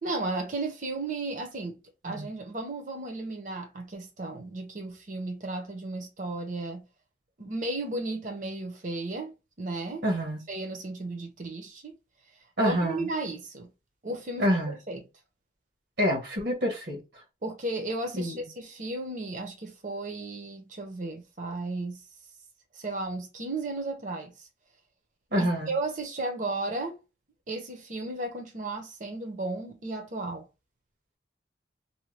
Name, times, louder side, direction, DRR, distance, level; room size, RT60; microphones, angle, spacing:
voice 1, 0.0-6.8 7.4-10.0 10.5-12.0 12.6-13.7 14.0-15.0 17.4-22.0 22.7-24.5 25.4-27.0 27.5-30.4, right 2 dB, 45° right, 0.7 m, -34 dB
voice 2, 10.0-10.4 12.6-13.1 14.4-14.7 16.0-17.0 18.2-18.5 25.3-25.7, equal, 75° right, 1.2 m, -27 dB
2.7 x 2.2 x 3.1 m
head